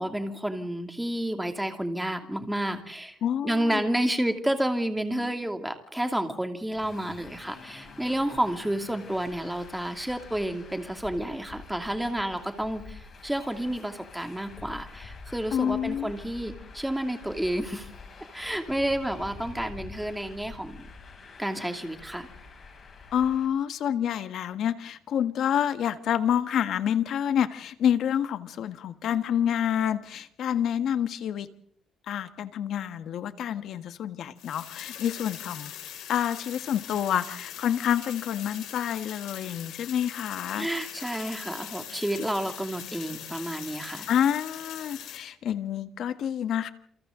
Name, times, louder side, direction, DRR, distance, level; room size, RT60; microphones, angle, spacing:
voice 1, 0.0-3.1 3.4-17.9 18.3-20.8 21.4-22.3 40.5-44.1, right 1 dB, 5° right, 6 dB, 2.7 m, -30 dB
voice 2, 3.2-3.8 15.5-16.1 23.1-31.5 32.1-35.7 36.1-40.7 44.1-46.7, left 9 dB, 65° left, 11 dB, 1.6 m, -28 dB
Traffic noise roadway noise, 6.7-23.5, left 4 dB, 35° left, 7.4 m, -47 dB
sound 1, 34.4-45.2, left 10 dB, 85° left, 5.9 m, -41 dB
28.5 x 28.5 x 3.9 m, 0.63 s
cardioid pair, 145°, 0 cm